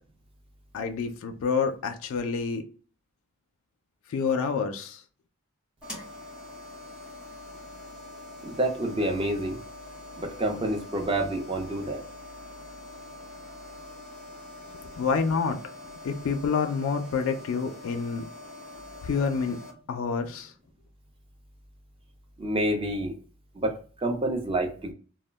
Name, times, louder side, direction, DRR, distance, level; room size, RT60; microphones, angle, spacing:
voice 1, 0.7-2.6 4.1-5.0 15.0-15.6 16.0-18.3 19.0-19.6 19.9-20.5, left 5 dB, 70° left, 6 dB, 0.3 m, -28 dB
sound 1, 5.8-19.7, left 2 dB, 5° right, 0.9 m, -44 dB
voice 2, 8.4-9.6 10.2-12.0 22.4-23.2 23.5-24.9, right 1 dB, 25° right, 3 dB, 0.4 m, -28 dB
2.2 x 2.1 x 3.3 m, 0.39 s
head